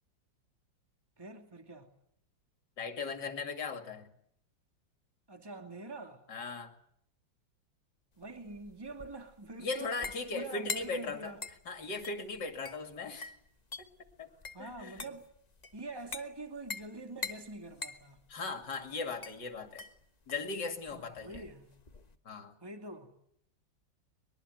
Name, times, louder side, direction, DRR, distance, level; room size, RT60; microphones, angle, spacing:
voice 1, 1.2-1.9 5.3-6.2 8.2-11.4 14.5-15.3 15.7-18.2 20.9-21.7 22.6-23.1, right 2 dB, 10° right, 2.5 m, -45 dB
voice 2, 2.8-4.1 6.3-6.7 9.6-11.4 11.7-13.3 14.2-14.3 14.6-15.1 18.3-19.8 20.3-21.4 22.2-22.5, left 4 dB, 60° left, 3.1 m, -38 dB
sound 1, 8.2-22.2, left 4 dB, 25° left, 1.2 m, -45 dB
23.5 x 22.0 x 9.3 m
omnidirectional pair, 2.1 m